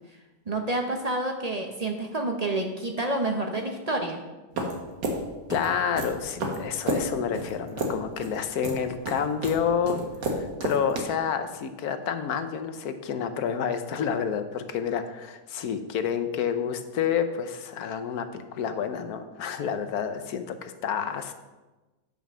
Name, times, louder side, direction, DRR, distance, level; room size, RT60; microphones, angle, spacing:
voice 1, 0.5-4.2, right 2 dB, 55° right, 3 dB, 0.4 m, -28 dB
sound 1, 4.6-11.0, right 2 dB, 85° right, 2.0 m, -31 dB
voice 2, 5.5-10.0 10.3-21.3, left 7 dB, 65° left, 9 dB, 1.1 m, -29 dB
9.4 x 5.4 x 6.1 m, 1.2 s
omnidirectional pair, 1.8 m